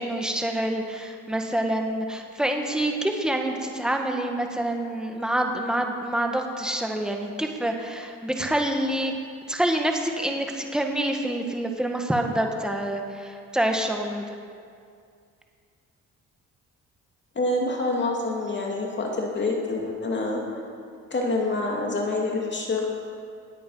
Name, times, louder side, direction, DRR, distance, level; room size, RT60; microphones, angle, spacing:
voice 1, 0.0-9.1 9.5-14.3, right 1 dB, ahead, 3 dB, 1.6 m, -27 dB
voice 2, 17.4-20.4 21.1-22.9, left 2 dB, 35° left, -1 dB, 2.3 m, -26 dB
19.5 x 8.4 x 5.6 m, 2.3 s
cardioid pair, 90°, 30 cm